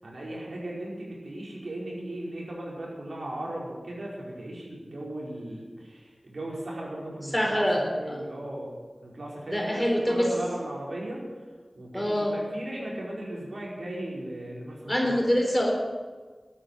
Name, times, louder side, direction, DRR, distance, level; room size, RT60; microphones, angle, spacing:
voice 1, 0.0-8.7 9.0-15.2, right 1 dB, 75° right, -4 dB, 5.0 m, -37 dB
voice 2, 7.3-7.8 8.1-8.2 9.5-10.3 11.9-12.3 14.9-15.7, equal, 15° left, 1 dB, 3.7 m, -25 dB
12.5 x 9.0 x 10.0 m, 1.4 s
wide cardioid pair, 55°, 0 cm